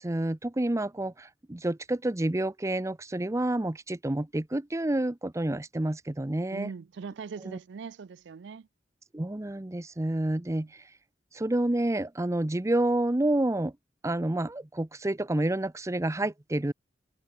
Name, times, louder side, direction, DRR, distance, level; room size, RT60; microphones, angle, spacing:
voice 1, 0.0-6.7 7.4-7.6 9.1-10.7 11.3-13.7 14.0-16.7, right 1 dB, 15° right, 0.7 m, -29 dB
voice 2, 6.5-8.7 10.5-10.7, right 5 dB, 80° right, 0.4 m, -41 dB
head